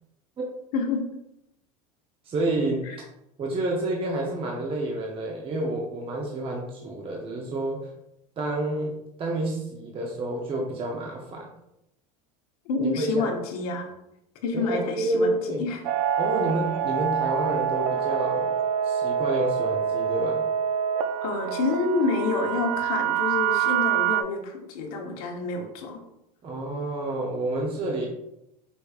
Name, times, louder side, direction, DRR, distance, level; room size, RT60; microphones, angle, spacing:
voice 1, 0.7-1.0 2.8-3.0 12.7-13.9 14.4-15.3 15.6-15.8 21.2-26.0, left 3 dB, 75° left, 2 dB, 1.0 m, -28 dB
voice 2, 2.3-2.8 3.4-7.9 8.4-11.5 12.8-13.3 14.5-15.6 16.2-18.6 18.8-20.4 26.4-28.1, right 2 dB, 30° right, -1 dB, 0.7 m, -29 dB
sound 1, 15.8-24.2, right 8 dB, 80° right, 0.4 m, -26 dB
5.2 x 3.2 x 2.4 m, 0.83 s
supercardioid pair, 110°, 19 cm